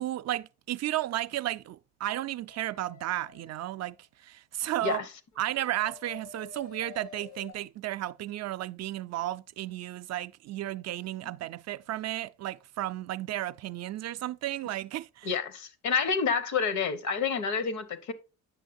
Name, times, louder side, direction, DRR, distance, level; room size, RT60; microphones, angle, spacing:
voice 1, 0.0-4.0 4.2-5.0 5.4-15.3, right 14 dB, 60° right, 0.4 m, -33 dB
sound 1, 2.5-3.9 5.3-7.5, left 6 dB, 90° left, 2.0 m, -49 dB
voice 2, 15.2-18.1, left 5 dB, 70° left, 1.1 m, -28 dB
8.3 x 6.2 x 2.5 m
cardioid pair, 90°, 30 cm